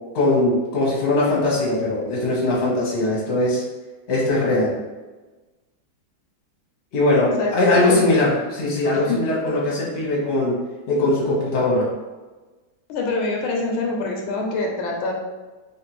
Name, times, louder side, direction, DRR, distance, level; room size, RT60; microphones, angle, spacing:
voice 1, 0.1-3.6 4.1-4.7 6.9-10.6 10.9-11.9, left 2 dB, 40° left, -5 dB, 1.2 m, -20 dB
voice 2, 7.3-8.0 8.9-9.2 12.9-15.1, left 3 dB, 85° left, 0 dB, 1.5 m, -25 dB
3.6 x 3.3 x 3.0 m, 1.2 s
omnidirectional pair, 2.2 m